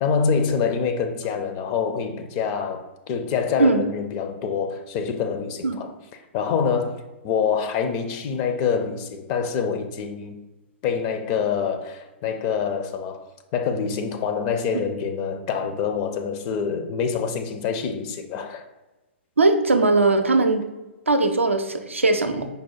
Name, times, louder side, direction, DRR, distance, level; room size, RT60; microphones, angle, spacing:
voice 1, 0.0-5.9 6.3-10.4 10.8-18.7, left 6 dB, 35° left, 0.5 m, -26 dB
voice 2, 19.4-20.6 21.1-22.5, right 3 dB, 85° right, 0.4 m, -19 dB
5.1 x 2.1 x 4.5 m
figure-of-eight pair, 115°, 7 cm